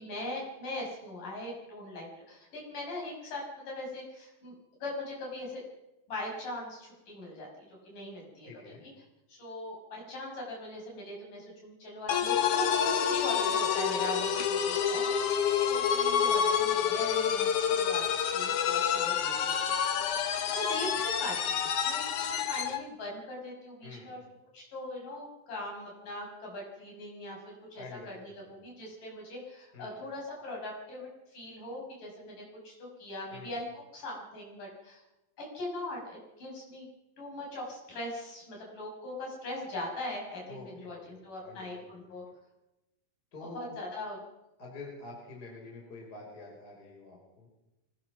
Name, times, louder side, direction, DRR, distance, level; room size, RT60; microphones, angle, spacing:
voice 1, 0.0-4.5 4.8-5.6 6.1-8.5 9.3-15.0 15.7-19.7 20.5-24.2 24.5-33.7 33.9-35.0 35.4-36.9 37.2-42.2 43.5-44.2, left 1 dB, 40° left, -2 dB, 7.6 m, -40 dB
voice 2, 8.5-8.8 23.8-24.1 27.7-28.6 29.7-30.0 33.3-33.6 40.5-42.1 43.3-43.7 44.6-47.5, left 3 dB, 20° left, -2 dB, 4.9 m, -47 dB
sound 1, 12.1-22.8, left 8 dB, 85° left, 1.7 m, -28 dB
24.5 x 19.0 x 6.1 m, 0.97 s
omnidirectional pair, 5.8 m